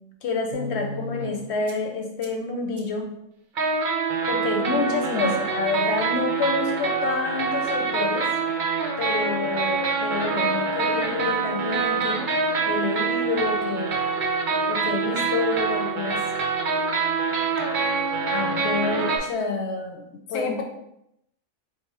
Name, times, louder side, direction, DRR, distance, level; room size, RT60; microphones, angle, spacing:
voice 1, 0.2-3.1 4.3-8.3 9.0-12.2 12.6-14.0 14.7-16.2 17.7-17.9 18.3-20.6, left 3 dB, 60° left, 2 dB, 0.8 m, -28 dB
sound 1, 0.5-1.3 1.7-1.8 2.2-2.3 2.8-2.9 3.6-19.2, right 4 dB, 50° right, 0.6 m, -25 dB
voice 2, 4.7-5.3 20.3-20.6, left 5 dB, 90° left, 3 dB, 1.1 m, -29 dB
3.4 x 2.9 x 4.6 m, 0.82 s
omnidirectional pair, 1.4 m